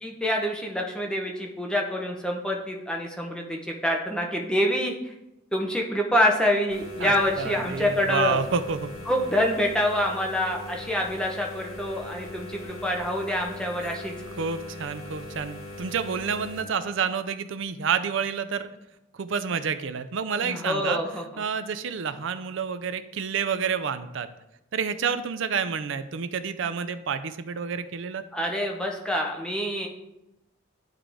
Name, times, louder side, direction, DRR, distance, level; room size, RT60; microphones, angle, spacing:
voice 1, 0.0-5.1 5.5-8.4 9.1-14.1 20.4-21.4 28.3-29.9, left 1 dB, 5° left, 0 dB, 0.6 m, -26 dB
sound 1, 6.7-16.6, left 2 dB, 70° left, 1.7 m, -41 dB
voice 2, 7.0-8.9 13.8-14.0 14.4-18.7 19.2-21.0 21.4-24.3 24.7-28.2, right 6 dB, 60° right, 11 dB, 0.4 m, -29 dB
10.5 x 3.7 x 3.4 m, 0.89 s
head